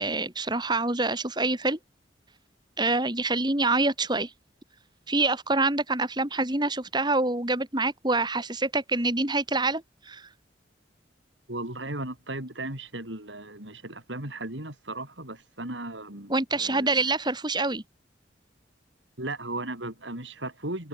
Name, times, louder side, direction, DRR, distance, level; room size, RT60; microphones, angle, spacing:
voice 1, 0.0-1.8 2.8-4.3 5.1-10.3 16.3-17.8, right 2 dB, 25° right, 3.3 m, -26 dB
voice 2, 11.5-17.0 19.2-20.9, right 2 dB, 80° right, 6.7 m, -36 dB
head